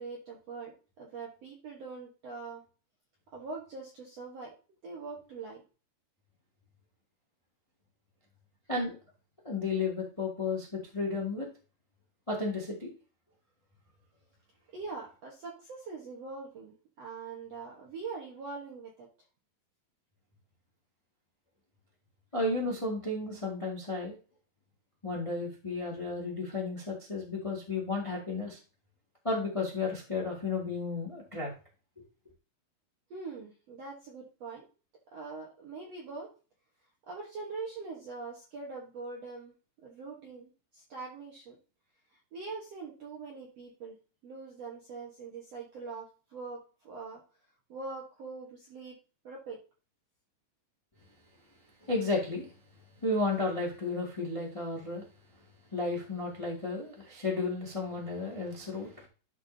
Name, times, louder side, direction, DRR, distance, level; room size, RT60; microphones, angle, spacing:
voice 1, 0.0-2.6 3.3-4.5 4.8-5.6 14.7-19.1 33.1-34.7 35.1-36.3 37.1-39.5 39.8-41.6 42.1-43.9 44.2-47.2 47.7-49.0 49.2-49.6, right 4 dB, 60° right, -2 dB, 1.7 m, -43 dB
voice 2, 9.4-11.5 12.3-12.9 22.3-24.1 25.0-28.6 29.2-31.5 51.8-52.5 53.0-55.0 55.7-59.1, left 3 dB, 20° left, -2 dB, 0.8 m, -33 dB
12.0 x 5.4 x 2.7 m, 0.35 s
omnidirectional pair, 4.7 m